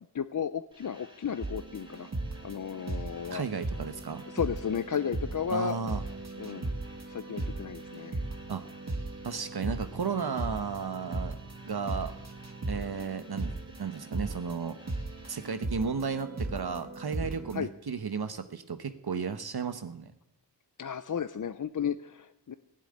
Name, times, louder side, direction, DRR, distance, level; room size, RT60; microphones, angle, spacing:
voice 1, 0.1-2.1 2.4-3.4 4.3-5.8 6.4-6.7 7.1-8.2 17.5-17.7 20.8-22.5, left 7 dB, 50° left, 12 dB, 0.6 m, -33 dB
sound 1, 0.7-15.5, equal, 10° right, 2.8 m, -56 dB
sound 2, 1.4-17.6, right 2 dB, 40° right, 1.7 m, -38 dB
voice 2, 3.3-4.2 5.5-6.0 8.5-8.6 9.2-11.4 11.6-12.1 12.7-13.5 13.8-14.8 15.3-20.1, right 5 dB, 65° right, 9 dB, 1.0 m, -34 dB
16.0 x 7.7 x 9.9 m, 0.79 s
wide cardioid pair, 90°, 41 cm